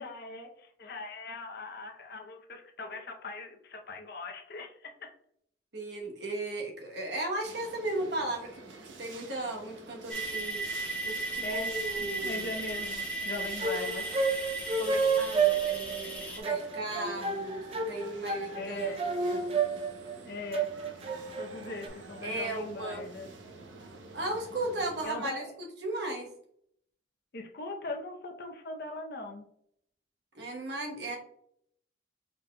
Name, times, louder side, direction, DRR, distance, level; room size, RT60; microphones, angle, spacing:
voice 1, 0.0-5.1 11.4-14.1 18.5-19.0 20.2-20.7 21.4-23.3 25.0-25.5 27.3-29.5, left 3 dB, 55° left, 4 dB, 0.6 m, -40 dB
voice 2, 5.7-10.6 11.0-12.5 14.8-19.4 22.2-23.0 24.1-26.3 30.3-31.2, right 2 dB, 60° right, 1 dB, 1.0 m, -36 dB
sound 1, 7.4-25.0, right 3 dB, 80° right, 0.7 m, -48 dB
sound 2, 10.1-16.4, right 2 dB, 10° left, 1.0 m, -36 dB
sound 3, 13.4-21.9, right 4 dB, 30° right, 0.5 m, -30 dB
5.2 x 3.9 x 2.2 m, 0.69 s
head